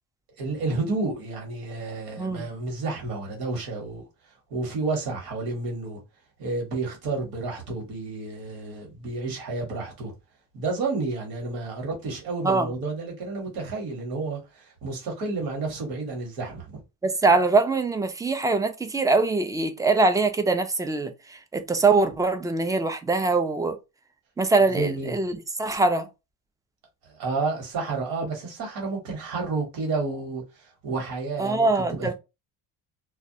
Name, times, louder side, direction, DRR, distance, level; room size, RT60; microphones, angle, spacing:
voice 1, 0.4-4.0 4.5-6.0 6.4-10.1 10.5-16.8 24.7-25.1 27.0-32.1, right 3 dB, 85° right, 1.3 m, -30 dB
voice 2, 17.0-23.8 24.4-26.1 31.4-32.1, right 3 dB, 10° right, 0.3 m, -23 dB
2.3 x 2.0 x 2.7 m
cardioid pair, 95°, 36 cm